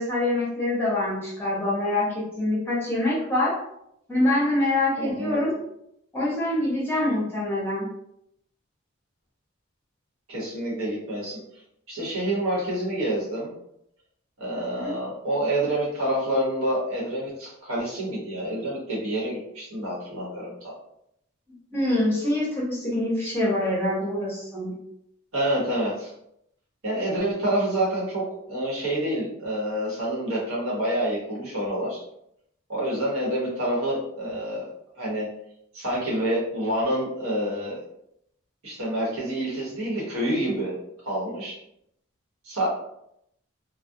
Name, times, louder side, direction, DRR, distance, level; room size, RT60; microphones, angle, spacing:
voice 1, 0.0-3.5 4.1-5.5 6.1-7.9 14.7-14.9 21.7-24.7, left 1 dB, 10° left, -7 dB, 0.8 m, -25 dB
voice 2, 5.0-5.4 10.3-11.4 11.9-13.5 14.4-20.7 25.3-26.1 26.8-32.0 32.7-34.7 35.0-35.3 35.7-37.8 38.6-40.8 41.0-41.6 42.4-42.7, right 1 dB, 85° right, -5 dB, 1.0 m, -27 dB
2.3 x 2.1 x 2.6 m, 0.76 s
head